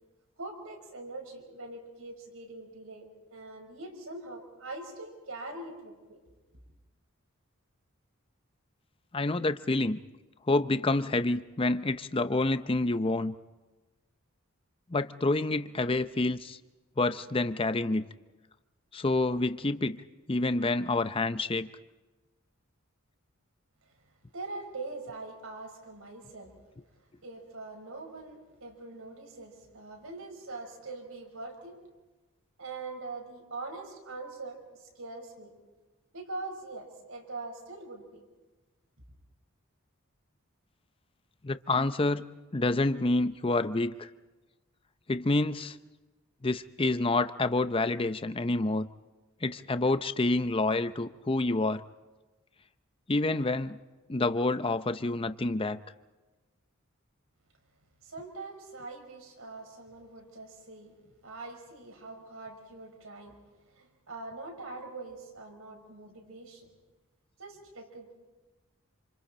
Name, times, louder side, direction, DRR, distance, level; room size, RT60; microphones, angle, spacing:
voice 1, 0.4-6.2 23.9-24.0 24.3-26.5 27.2-31.8 32.6-35.5 36.1-38.2 58.0-60.9 61.2-63.4 63.7-66.7 67.4-68.1, right 3 dB, 80° right, 2 dB, 5.2 m, -43 dB
voice 2, 9.1-10.0 10.5-13.3 14.9-16.6 17.0-18.0 18.9-20.0 20.3-21.7 41.4-44.1 45.1-45.8 46.4-48.9 49.4-51.8 53.1-53.8 54.1-55.8, left 2 dB, 25° left, 11 dB, 0.6 m, -28 dB
28.0 x 27.5 x 4.4 m, 1.2 s
head